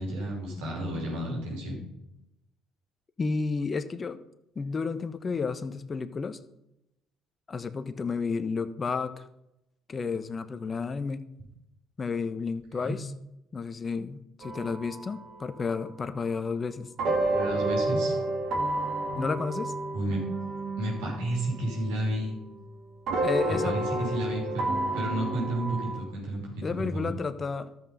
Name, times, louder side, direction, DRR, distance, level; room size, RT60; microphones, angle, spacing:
voice 1, 0.0-1.8 12.7-13.0 17.3-18.1 19.9-20.2 20.8-22.4 23.5-27.1, right 1 dB, 80° right, -3 dB, 5.7 m, -32 dB
voice 2, 3.2-4.2 4.5-6.4 7.5-9.2 9.9-11.2 12.0-13.1 13.5-16.9 19.1-19.7 23.2-23.7 26.6-27.7, left 4 dB, 35° left, 11 dB, 1.0 m, -31 dB
sound 1, 14.4-15.8 17.0-22.7 23.1-26.0, right 2 dB, 60° right, 2.5 m, -31 dB
12.5 x 7.9 x 5.6 m, 0.86 s
hypercardioid pair, 60°, 0 cm